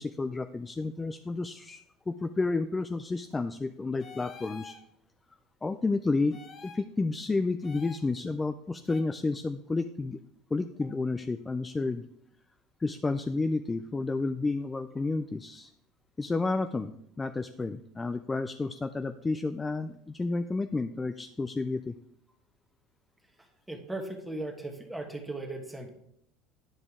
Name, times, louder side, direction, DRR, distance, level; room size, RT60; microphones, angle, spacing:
voice 1, 0.0-4.7 5.6-10.2 10.5-12.0 12.8-15.7 16.2-21.9, left 3 dB, 15° left, 9 dB, 0.3 m, -31 dB
sound 1, 4.0-4.8 6.3-6.8 7.6-8.0 8.9-9.0, left 5 dB, 35° left, 0.9 m, -47 dB
voice 2, 23.4-25.9, right 2 dB, 5° right, 3 dB, 1.2 m, -38 dB
9.8 x 5.2 x 3.6 m, 0.74 s
supercardioid pair, 115°, 0 cm